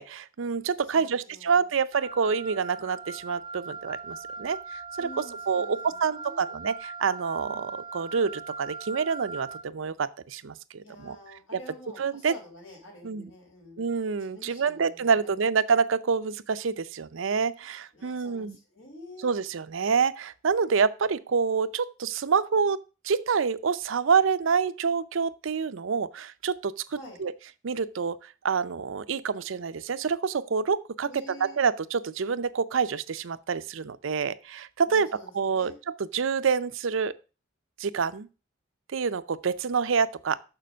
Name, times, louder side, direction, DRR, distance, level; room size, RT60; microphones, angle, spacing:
voice 1, 0.0-11.6 12.0-12.3 13.0-13.3 13.8-18.6 19.2-22.8 23.0-27.3 27.6-28.2 28.4-37.1 37.8-38.3 38.9-40.4, right 5 dB, 70° right, 0.5 m, -27 dB
voice 2, 0.9-1.6 5.0-6.4 10.8-13.8 14.2-15.4 17.9-19.3 26.9-27.2 31.0-31.6 34.9-35.8, left 1 dB, 75° left, 4.4 m, -48 dB
Wind instrument woodwind instrument, 1.9-9.7, right 4 dB, 25° right, 0.6 m, -40 dB
6.8 x 6.3 x 6.2 m
head